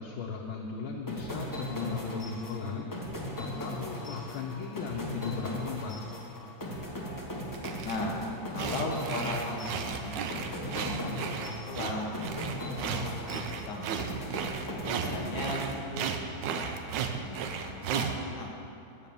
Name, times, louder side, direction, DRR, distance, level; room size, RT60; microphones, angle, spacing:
voice 1, 0.0-2.9 3.4-6.0, left 5 dB, 85° left, 0 dB, 1.5 m, -37 dB
sound 1, 1.1-16.4, left 1 dB, 20° left, 0.5 m, -38 dB
sound 2, 7.4-8.1 8.5-18.2, right 7 dB, 75° right, 1.2 m, -35 dB
voice 2, 7.8-8.2 8.5-10.2 10.6-12.2 12.6-14.1 14.7-16.8 17.2-18.5, left 2 dB, 65° left, 0 dB, 1.5 m, -38 dB
7.2 x 6.6 x 7.0 m, 2.6 s
omnidirectional pair, 2.1 m